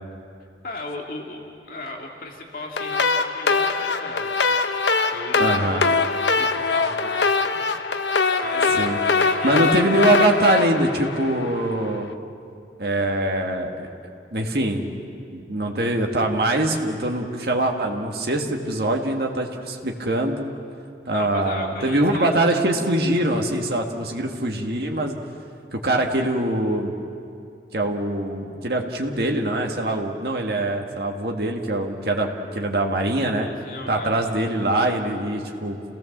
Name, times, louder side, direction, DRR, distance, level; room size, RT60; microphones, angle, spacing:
voice 1, 0.6-4.6 5.1-6.0 6.3-7.7 8.4-9.8 21.1-22.3 33.4-34.3, left 2 dB, 50° left, 0 dB, 2.3 m, -36 dB
sound 1, 2.8-11.9, left 4 dB, 85° left, 0.9 m, -22 dB
voice 2, 5.4-5.9 8.7-9.0 9.4-12.1 12.8-13.9 14.3-14.9 15.3-20.5 21.1-25.2 25.7-26.9 27.7-33.5 33.9-35.8, right 1 dB, 60° right, 2 dB, 1.9 m, -23 dB
29.0 x 17.5 x 7.4 m, 2.5 s
head